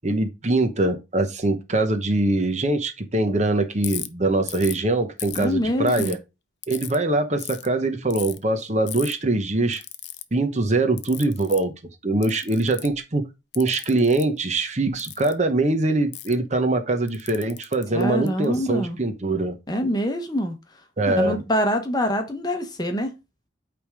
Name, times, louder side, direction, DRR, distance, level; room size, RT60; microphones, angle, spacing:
voice 1, 0.0-6.2 6.7-9.8 10.3-11.7 12.0-13.3 13.6-19.6 21.0-21.4, right 2 dB, 35° right, 0.9 m, -23 dB
Ratchet pawl, 3.8-4.1 4.5-4.8 5.2-6.1 6.6-7.0 7.4-7.7 8.1-8.4 8.9-9.1 9.7-10.2 11.0-11.6 12.2-13.0 13.5-14.2 15.0-15.3 16.1-16.3 17.1-18.5, left 14 dB, 65° left, 0.6 m, -35 dB
voice 2, 5.4-6.2 17.9-19.0 19.7-20.5 21.1-23.1, equal, 20° left, 1.0 m, -25 dB
8.6 x 3.5 x 4.8 m
head